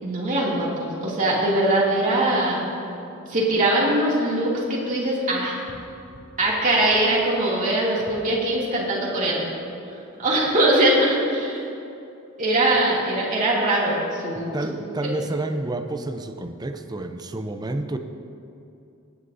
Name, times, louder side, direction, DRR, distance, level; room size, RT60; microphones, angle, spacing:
voice 1, 0.0-2.6 3.3-5.6 6.4-9.5 10.2-11.7 12.4-14.5, right 1 dB, 40° right, -5 dB, 2.6 m, -22 dB
voice 2, 14.5-18.0, right 2 dB, 20° right, 7 dB, 0.6 m, -29 dB
20.0 x 9.8 x 2.7 m, 2.7 s
head